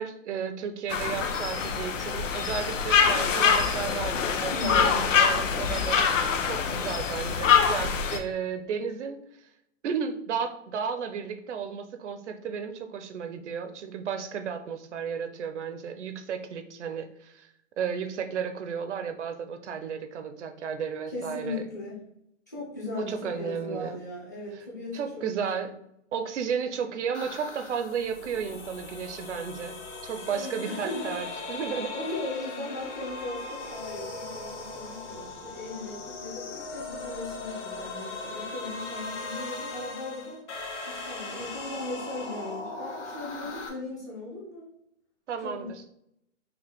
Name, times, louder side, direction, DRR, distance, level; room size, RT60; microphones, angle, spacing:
voice 1, 0.0-6.1 6.4-9.2 9.8-17.5 17.8-21.7 22.9-24.0 24.9-25.7 26.1-29.8 30.0-31.9 45.3-45.7, right 7 dB, 65° right, 9 dB, 0.6 m, -33 dB
sound 1, 0.9-8.2, left 6 dB, 80° left, 0.8 m, -24 dB
voice 2, 4.5-5.1 21.1-22.0 22.5-25.7 30.3-31.2 31.9-40.4 40.8-44.7 45.4-45.7, left 2 dB, 15° left, -7 dB, 0.5 m, -37 dB
sound 2, 27.1-43.7, left 3 dB, 65° left, 1.2 m, -39 dB
5.8 x 2.2 x 3.4 m, 0.74 s
hypercardioid pair, 180°, 37 cm